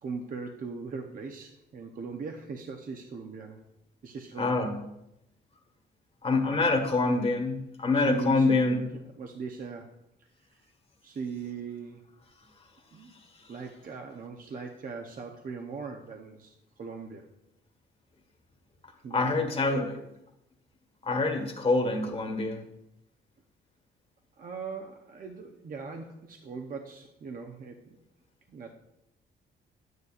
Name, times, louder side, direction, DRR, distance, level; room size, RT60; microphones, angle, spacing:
voice 1, 0.0-3.6 4.0-4.8 6.4-6.6 8.0-8.9 9.2-10.0 11.0-12.1 12.9-13.1 13.5-17.3 19.0-20.0 24.4-28.0 28.5-28.7, right 4 dB, 45° right, 3 dB, 0.8 m, -39 dB
voice 2, 4.4-4.8 6.2-8.8 13.4-13.5 19.1-20.0 21.0-22.6, left 3 dB, 30° left, 3 dB, 1.6 m, -26 dB
9.3 x 9.2 x 2.5 m, 0.85 s
cardioid pair, 90°, 20 cm